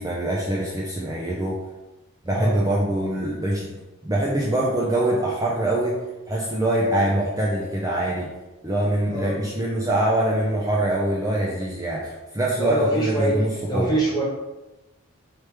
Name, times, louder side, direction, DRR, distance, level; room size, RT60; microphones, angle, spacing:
voice 1, 0.0-1.6 2.2-3.8 4.0-6.0 6.3-8.3 8.6-14.0, right 1 dB, 15° right, -4 dB, 0.4 m, -24 dB
voice 2, 12.6-13.3 13.7-14.2, right 1 dB, 15° left, -5 dB, 1.2 m, -24 dB
4.5 x 3.3 x 3.2 m, 1.1 s
head